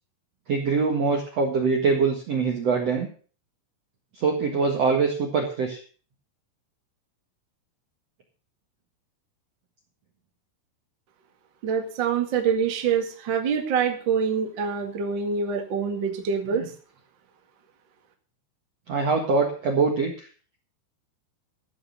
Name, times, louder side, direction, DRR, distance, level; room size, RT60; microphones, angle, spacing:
voice 1, 0.5-3.1 4.1-5.8 16.4-16.7 18.9-20.3, right 4 dB, 85° right, 2 dB, 1.4 m, -24 dB
voice 2, 11.6-16.6, right 6 dB, 65° right, 4 dB, 1.1 m, -25 dB
15.0 x 6.6 x 7.1 m, 0.40 s
omnidirectional pair, 5.7 m